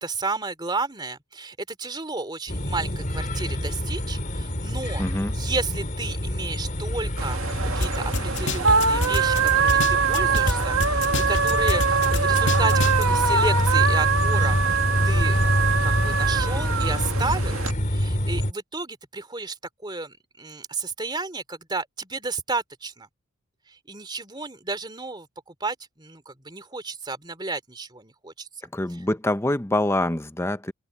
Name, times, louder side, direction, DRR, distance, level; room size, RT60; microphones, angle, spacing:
voice 1, 0.0-5.0 5.3-7.4 7.7-17.6 17.9-19.6 19.8-23.1 23.7-28.5, right 3 dB, 20° right, 3.0 m, -32 dB
sound 1, 2.5-18.5, equal, 35° left, 4.7 m, -26 dB
voice 2, 5.0-5.4 28.7-30.7, left 1 dB, 10° left, 0.7 m, -25 dB
sound 2, 7.2-17.7, right 5 dB, 70° right, 2.0 m, -23 dB
sound 3, 7.8-7.9 8.1-10.5 10.8-13.0, left 2 dB, 55° left, 2.8 m, -26 dB
head